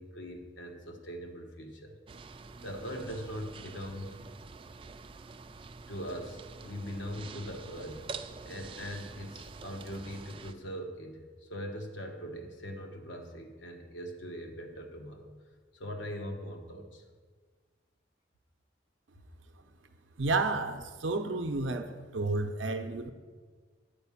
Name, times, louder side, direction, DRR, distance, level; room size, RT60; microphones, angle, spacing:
voice 1, 0.0-1.9 2.6-4.2 5.9-8.1 8.4-15.3 15.7-17.0, equal, 75° left, 4 dB, 1.2 m, -41 dB
sound 1, 2.1-10.5, right 4 dB, 25° right, 0.3 m, -46 dB
voice 2, 20.2-23.1, right 3 dB, 80° right, 6 dB, 0.6 m, -31 dB
9.0 x 4.9 x 7.1 m, 1.5 s
head